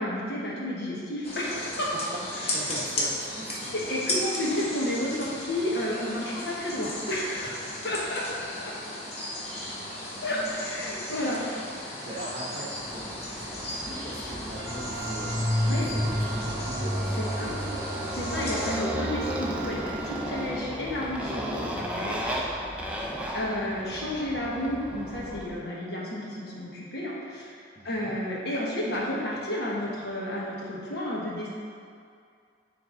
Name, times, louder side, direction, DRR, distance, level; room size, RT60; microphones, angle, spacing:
voice 1, 0.0-1.9 2.4-2.6 3.7-7.5 7.8-8.7 10.2-11.4 11.8-12.0 15.6-15.9 17.2-17.5 18.2-22.4 22.7-23.0 23.3-31.5, left 1 dB, 55° left, -5 dB, 1.2 m, -31 dB
sound 1, 1.2-18.8, left 1 dB, 35° left, 0.9 m, -36 dB
voice 2, 2.5-3.7 7.4-7.7 11.3-17.8 18.3-18.4 22.8-23.3 27.7-28.2, right 1 dB, 35° right, -5 dB, 1.1 m, -41 dB
Motorcycle, 12.9-25.6, equal, 5° right, 0.4 m, -32 dB
Trumpet, 14.6-20.6, right 8 dB, 75° right, 0.4 m, -41 dB
9.6 x 3.4 x 3.8 m, 2.3 s
head